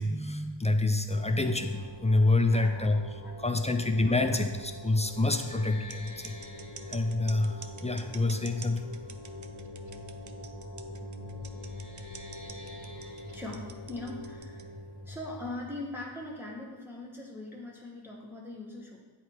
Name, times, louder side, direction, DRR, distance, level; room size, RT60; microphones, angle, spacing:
voice 1, 0.0-3.0 3.4-6.3 6.9-8.9, left 2 dB, 15° left, 6 dB, 0.4 m, -27 dB
sound 1, 1.1-16.5, left 1 dB, 40° left, 1.2 m, -43 dB
voice 2, 2.5-2.9 3.2-3.3 12.8-14.8 15.0-19.0, left 2 dB, 5° right, -3 dB, 1.1 m, -41 dB
sound 2, 5.9-14.6, right 6 dB, 40° right, 0.5 m, -47 dB
8.5 x 3.2 x 4.6 m, 1.3 s
wide cardioid pair, 50°, 48 cm